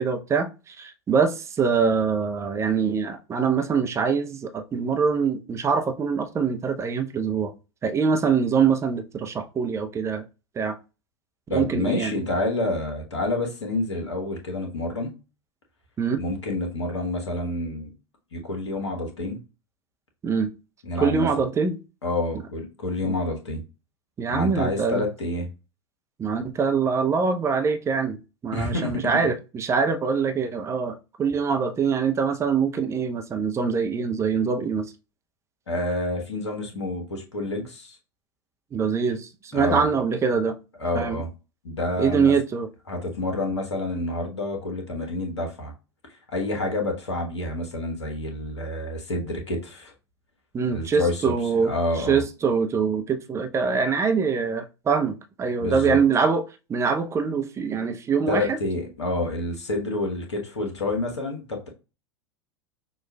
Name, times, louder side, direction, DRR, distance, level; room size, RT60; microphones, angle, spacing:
voice 1, 0.0-7.5 7.8-10.2 10.6-10.8 11.5-12.1 16.0-16.2 20.2-20.5 21.0-21.8 23.0-23.2 24.2-25.1 26.2-28.2 28.4-34.9 38.7-40.5 40.9-41.2 42.0-42.7 50.5-56.4 56.7-58.6, right 5 dB, 20° right, 0.6 m, -24 dB
voice 2, 11.5-15.1 16.2-17.9 18.3-19.4 20.8-21.3 22.0-23.6 24.3-25.5 28.5-29.0 35.7-37.9 39.5-39.9 40.8-41.3 41.6-42.3 42.9-45.7 46.3-49.9 50.7-51.3 51.6-52.2 55.6-56.0 58.3-61.7, left 2 dB, 75° left, 1.2 m, -28 dB
6.0 x 2.4 x 2.2 m
figure-of-eight pair, 85°, 15 cm